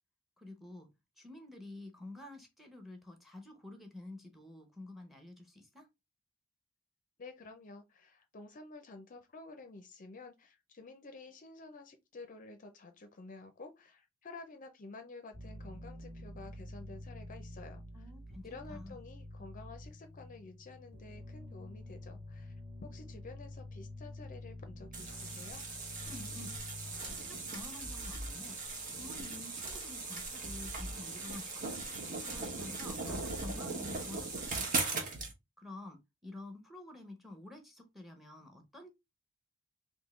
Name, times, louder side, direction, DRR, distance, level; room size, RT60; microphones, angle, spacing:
voice 1, 0.4-0.9 1.2-5.9 17.9-19.0 26.1-26.5 27.0-28.6 28.9-31.8 32.2-35.1 35.6-38.9, left 2 dB, ahead, 0.8 m, -50 dB
voice 2, 7.2-18.1 18.4-22.5 22.8-25.6, left 3 dB, 40° left, 0.5 m, -51 dB
sound 1, 15.3-32.7, left 1 dB, 55° right, 1.8 m, -50 dB
sound 2, 24.9-35.3, right 3 dB, 40° right, 1.0 m, -39 dB
3.6 x 2.7 x 3.0 m
head